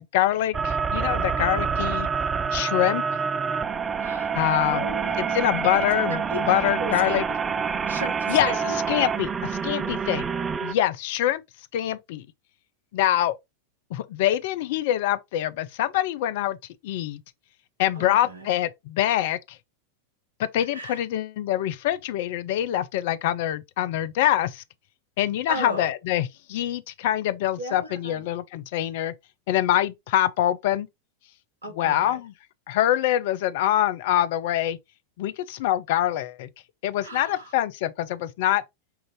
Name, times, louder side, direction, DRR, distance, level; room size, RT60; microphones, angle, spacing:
voice 1, 0.0-2.1 2.5-3.0 4.3-4.9 5.2-7.3 8.3-10.3 10.6-11.4 11.7-12.2 12.9-13.4 13.9-16.6 16.8-17.2 17.8-19.6 20.4-24.6 25.2-29.1 29.5-30.9 31.8-32.3 32.7-34.8 35.2-36.5 36.8-38.6, left 12 dB, 50° left, 0.4 m, -25 dB
sound 1, 0.5-10.7, right 6 dB, 20° right, 0.4 m, -27 dB
voice 2, 4.0-4.3 4.7-5.4 6.1-6.4 6.8-7.2 7.9-8.8 9.8-9.9 17.9-18.5 20.7-21.0 25.5-25.9 27.6-28.3 31.6-32.2 37.0-37.5, right 1 dB, 75° right, 1.2 m, -35 dB
5.7 x 2.5 x 3.1 m
figure-of-eight pair, 90°, 0 cm